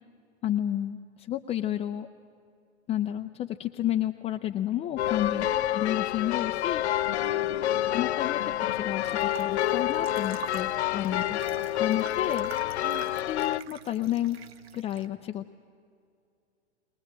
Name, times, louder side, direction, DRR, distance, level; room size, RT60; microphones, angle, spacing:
voice 1, 0.4-2.1 2.9-5.5 5.7-6.8 7.9-11.4 11.8-12.5 13.3-14.4 14.7-15.6, left 12 dB, 20° left, 5 dB, 0.5 m, -31 dB
sound 1, 5.0-13.6, left 13 dB, 70° left, 0.5 m, -28 dB
voice 2, 5.3-5.7 7.2-7.9 11.1-11.6 12.8-13.1, right 10 dB, 35° right, 4 dB, 3.5 m, -46 dB
sound 2, 7.1-11.9, left 8 dB, 85° left, 0.9 m, -46 dB
sound 3, 9.0-15.1, right 8 dB, 60° right, 1.2 m, -46 dB
22.0 x 20.0 x 8.8 m, 2.4 s
hypercardioid pair, 110°, 35 cm